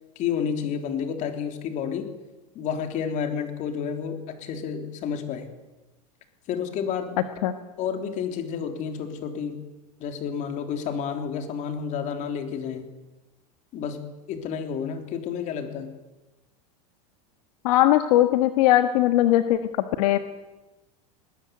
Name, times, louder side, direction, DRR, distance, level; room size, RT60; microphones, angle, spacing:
voice 1, 0.2-2.1 2.6-5.5 6.5-7.2 7.8-9.6 10.0-12.9 13.7-14.0 14.3-15.9, left 7 dB, 40° left, 6 dB, 3.6 m, -30 dB
voice 2, 17.6-20.2, left 13 dB, 70° left, 8 dB, 1.6 m, -20 dB
21.5 x 20.5 x 9.6 m, 1.1 s
supercardioid pair, 150°, 20 cm